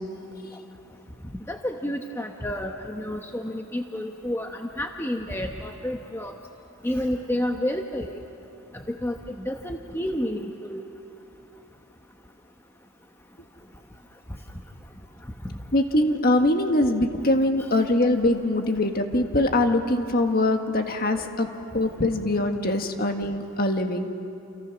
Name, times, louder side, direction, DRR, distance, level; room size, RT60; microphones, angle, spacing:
voice 1, 1.5-6.3 6.8-8.1 8.7-10.8 21.2-21.3, left 1 dB, 10° left, 3 dB, 1.0 m, -30 dB
voice 2, 15.7-21.5 21.7-24.1, left 1 dB, 45° left, 5 dB, 1.8 m, -23 dB
29.5 x 28.5 x 6.1 m, 2.9 s
head